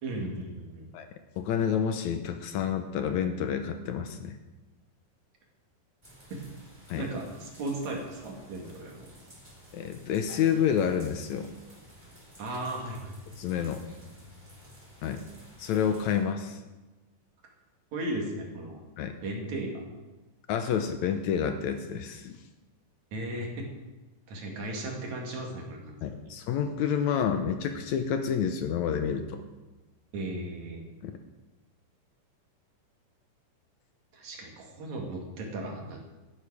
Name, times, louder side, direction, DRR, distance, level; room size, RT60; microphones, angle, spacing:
voice 1, 0.0-0.9 6.3-6.4 7.0-9.1 12.4-13.1 17.9-18.8 19.2-19.8 23.1-23.7 24.3-26.2 30.1-30.8 34.1-36.0, right 1 dB, 65° right, 0 dB, 3.4 m, -36 dB
voice 2, 1.4-4.4 6.9-7.1 9.7-11.5 13.4-13.8 15.0-15.2 15.6-16.6 19.0-19.2 20.5-22.4 26.0-29.4 31.0-31.2, left 8 dB, 75° left, 7 dB, 2.0 m, -29 dB
sound 1, 6.0-16.2, equal, 15° right, 3.5 m, -53 dB
17.5 x 10.0 x 4.9 m, 1.1 s
omnidirectional pair, 3.7 m